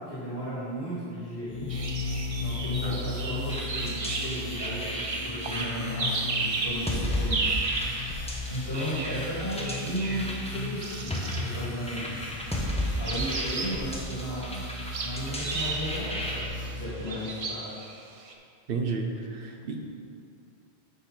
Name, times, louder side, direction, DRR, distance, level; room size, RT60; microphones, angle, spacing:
voice 1, 0.0-1.7 2.4-7.6 8.5-12.2 13.0-14.6 15.0-16.5 16.7-17.7, equal, 60° left, -10 dB, 2.1 m, -35 dB
sound 1, 1.5-16.8, left 2 dB, 35° left, 0.6 m, -37 dB
sound 2, 1.7-12.3 12.9-18.3, right 3 dB, 40° right, 0.6 m, -35 dB
sound 3, 3.5-16.5, equal, 5° left, 0.9 m, -35 dB
voice 2, 18.7-19.8, right 4 dB, 65° right, 4 dB, 0.9 m, -32 dB
6.8 x 5.8 x 5.1 m, 2.3 s
omnidirectional pair, 1.1 m